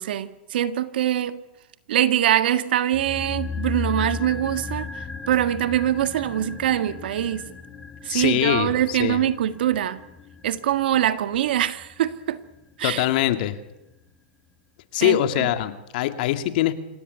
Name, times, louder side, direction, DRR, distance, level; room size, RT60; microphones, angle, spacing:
voice 1, 0.0-1.4 1.9-7.5 8.0-10.0 10.4-12.4 12.8-13.1 15.0-15.5, right 11 dB, 75° right, 11 dB, 1.7 m, -23 dB
sound 1, 2.9-13.2 13.4-13.5, left 5 dB, 10° left, 2.7 m, -36 dB
voice 2, 8.1-9.2 12.8-13.6 14.9-16.7, left 13 dB, 60° left, 9 dB, 2.3 m, -23 dB
26.5 x 16.5 x 9.9 m, 0.93 s
hypercardioid pair, 125°, 5 cm